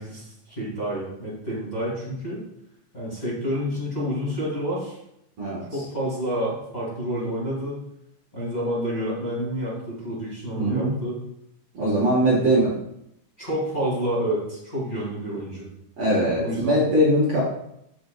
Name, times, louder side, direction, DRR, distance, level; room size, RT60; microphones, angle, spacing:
voice 1, 0.0-2.4 2.9-5.0 5.7-7.8 8.3-11.2 12.2-12.4 13.4-15.7 16.2-16.8, equal, 15° left, -8 dB, 2.6 m, -29 dB
voice 2, 10.6-10.9 11.7-12.7 16.0-17.4, right 1 dB, 50° right, -6 dB, 2.0 m, -21 dB
8.1 x 7.6 x 2.3 m, 0.78 s
omnidirectional pair, 3.7 m